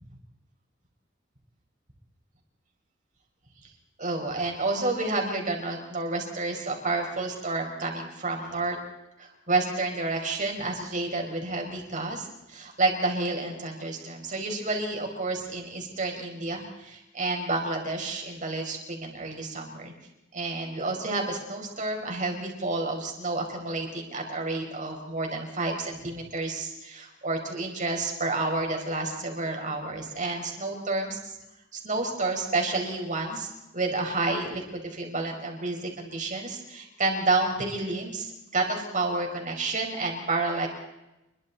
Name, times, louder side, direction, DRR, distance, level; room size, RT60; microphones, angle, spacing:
voice 1, 4.0-8.8 9.2-19.9 20.3-31.4 31.7-40.7, right 3 dB, 40° right, 1 dB, 5.3 m, -30 dB
28.0 x 23.0 x 4.3 m, 0.95 s
head